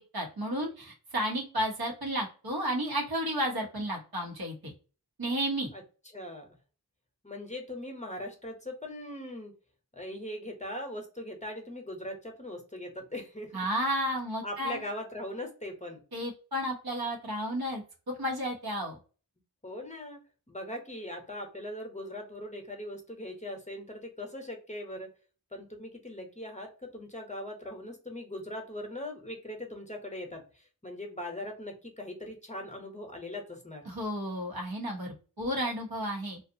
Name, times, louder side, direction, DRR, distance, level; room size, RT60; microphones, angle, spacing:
voice 1, 0.0-4.7 5.2-5.7 13.5-14.8 16.1-19.0 33.9-36.4, equal, 70° right, -1 dB, 1.0 m, -32 dB
voice 2, 6.1-6.6 7.2-9.5 9.9-13.7 14.4-16.0 19.6-20.2 20.5-25.1 25.5-33.9, left 1 dB, 20° left, 2 dB, 0.8 m, -40 dB
2.6 x 2.4 x 2.6 m, 0.36 s
wide cardioid pair, 45°, 38 cm